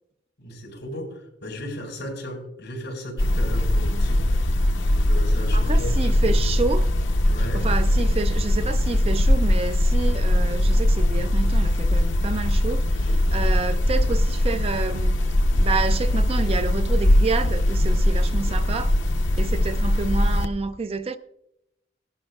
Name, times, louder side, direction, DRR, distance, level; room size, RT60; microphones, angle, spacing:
voice 1, 0.4-4.3 5.0-6.3 7.3-7.7, equal, 60° left, 4.5 m, -35 dB
sound 1, 3.2-20.5, left 1 dB, 75° left, 0.7 m, -21 dB
voice 2, 5.5-6.9 7.5-15.2 15.5-19.0 19.4-21.2, right 4 dB, 30° right, 0.4 m, -29 dB
18.5 x 11.5 x 2.3 m
head